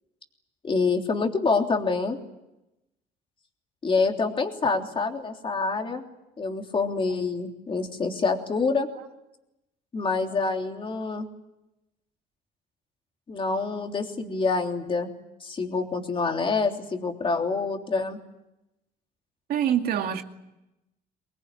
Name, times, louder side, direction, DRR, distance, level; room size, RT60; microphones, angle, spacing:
voice 1, 0.6-2.2 3.8-6.0 6.4-8.9 9.9-11.3 13.3-15.1 15.4-18.2, left 4 dB, 30° left, 3.4 m, -26 dB
voice 2, 19.5-20.2, right 9 dB, 65° right, 2.4 m, -26 dB
24.5 x 20.0 x 10.0 m
cardioid pair, 110°, 17 cm